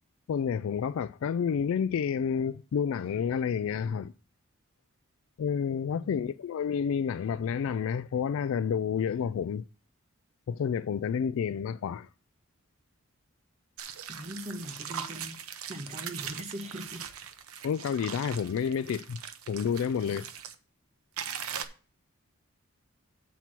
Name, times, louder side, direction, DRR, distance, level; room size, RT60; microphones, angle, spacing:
voice 1, 0.3-4.1 5.4-9.6 10.5-12.1 17.6-19.2 19.5-20.3, left 7 dB, 70° left, 0.3 m, -30 dB
voice 2, 5.9-6.3 14.1-17.0, equal, 30° right, 1.0 m, -41 dB
sound 1, 13.8-20.5 21.2-21.6, right 8 dB, 85° right, 0.8 m, -40 dB
8.2 x 4.5 x 5.8 m
head